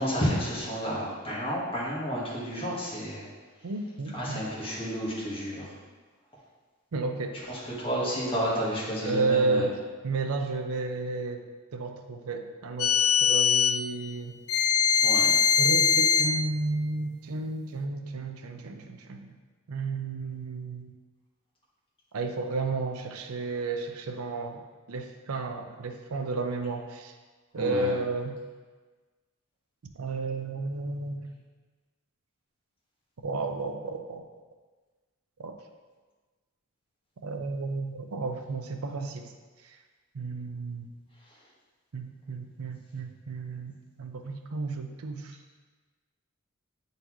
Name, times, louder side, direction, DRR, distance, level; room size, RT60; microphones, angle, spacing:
voice 1, 0.0-3.3 4.1-5.7 7.5-9.6 14.9-15.3 27.5-27.9 41.3-41.4, equal, 25° left, -7 dB, 1.5 m, -31 dB
voice 2, 3.6-4.4 6.9-7.3 9.0-9.8 10.0-11.5 11.7-14.4 15.6-19.3 19.7-20.9 22.1-24.6 24.9-27.1 27.5-28.4 30.0-31.3 33.2-34.2 35.4-35.6 37.2-39.4 39.6-39.8 40.1-40.9 41.9-43.7 44.0-45.4, right 3 dB, 80° right, 5 dB, 0.6 m, -32 dB
sound 1, 12.8-13.8 14.5-16.3, left 7 dB, 70° left, 0.5 m, -22 dB
7.9 x 3.9 x 3.1 m, 1.3 s
head